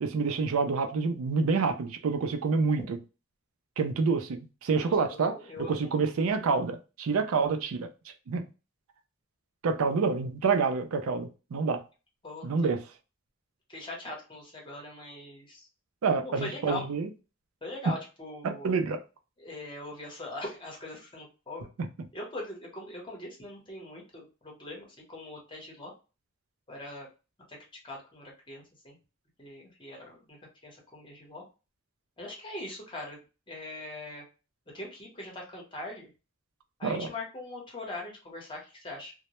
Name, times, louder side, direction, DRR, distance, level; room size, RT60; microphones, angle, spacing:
voice 1, 0.0-2.8 3.8-5.4 5.7-7.9 8.3-8.4 9.6-11.8 12.4-12.8 16.0-17.1 18.4-19.0 36.8-37.1, right 4 dB, 85° right, 0.4 m, -27 dB
voice 2, 4.8-5.9 12.2-12.5 13.7-15.7 16.2-16.8 17.6-18.7 19.4-21.7 22.1-25.9 26.7-27.1 27.5-27.6 27.8-29.0 29.4-31.4 32.2-33.2 33.5-34.2 34.7-36.1 36.8-39.1, left 1 dB, 25° left, 0.8 m, -41 dB
2.1 x 2.0 x 2.9 m
head